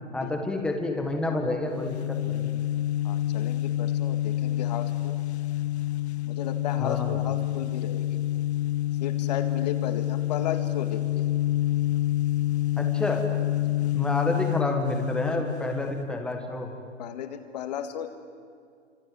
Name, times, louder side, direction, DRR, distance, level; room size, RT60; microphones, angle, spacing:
voice 1, 0.1-2.5 6.8-7.1 12.8-13.3 13.9-16.7, left 2 dB, ahead, 3 dB, 1.5 m, -29 dB
sound 1, 1.7-16.2, left 14 dB, 60° left, 0.6 m, -28 dB
voice 2, 3.0-5.2 6.3-8.2 9.0-11.3 13.7-13.9 17.0-18.1, left 9 dB, 35° left, 8 dB, 2.0 m, -35 dB
27.5 x 25.5 x 7.8 m, 2.2 s
hypercardioid pair, 165°, 37 cm